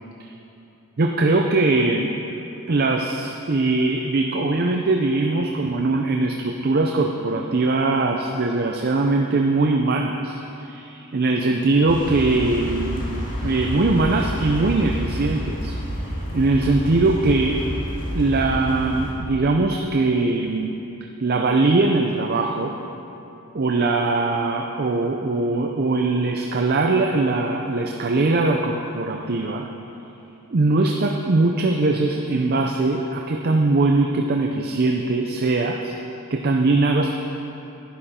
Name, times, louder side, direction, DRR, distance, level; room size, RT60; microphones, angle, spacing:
voice 1, 1.0-2.1 2.7-13.1 13.4-15.8 16.3-17.6 18.1-20.8 21.2-22.7 23.5-29.7 30.5-36.0 36.3-37.1, right 3 dB, 45° right, 2 dB, 0.5 m, -21 dB
sound 1, 11.9-19.1, equal, 40° left, 2.0 m, -29 dB
11.5 x 11.0 x 4.3 m, 3.0 s
head